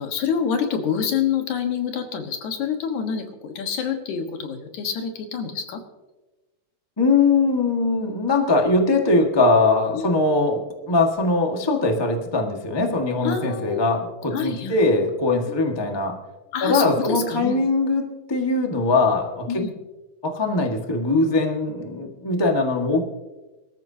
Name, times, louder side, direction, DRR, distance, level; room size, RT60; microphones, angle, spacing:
voice 1, 0.0-5.8 9.9-10.1 13.2-13.8 14.3-14.8 15.5-15.6 16.5-17.6 19.5-19.7, left 7 dB, 70° left, 5 dB, 2.7 m, -27 dB
voice 2, 7.0-10.6 10.9-16.2 16.6-18.0 18.3-19.7 20.2-23.0, left 3 dB, 40° left, 2 dB, 0.3 m, -21 dB
23.5 x 14.0 x 2.8 m, 1.1 s
omnidirectional pair, 3.7 m